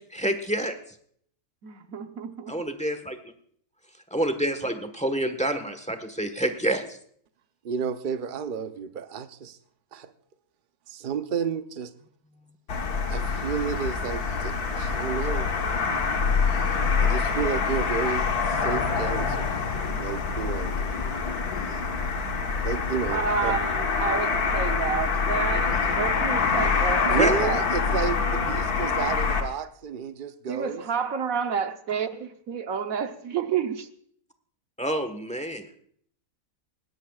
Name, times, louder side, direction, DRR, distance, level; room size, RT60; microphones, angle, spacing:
voice 1, 0.1-0.8 2.5-3.1 4.1-7.0 27.2-27.3 34.8-35.6, right 1 dB, 5° left, 8 dB, 1.1 m, -27 dB
voice 2, 1.6-2.6 23.1-27.6 30.5-33.9, right 6 dB, 70° right, 7 dB, 1.3 m, -30 dB
voice 3, 7.6-9.6 9.9-10.1 10.9-11.9 13.1-15.6 17.0-19.6 20.0-20.7 22.6-23.6 27.0-30.8, right 6 dB, 45° right, 9 dB, 0.8 m, -31 dB
sound 1, 12.7-29.4, left 5 dB, 85° left, 1.9 m, -25 dB
20.5 x 17.0 x 2.4 m, 0.62 s
omnidirectional pair, 1.6 m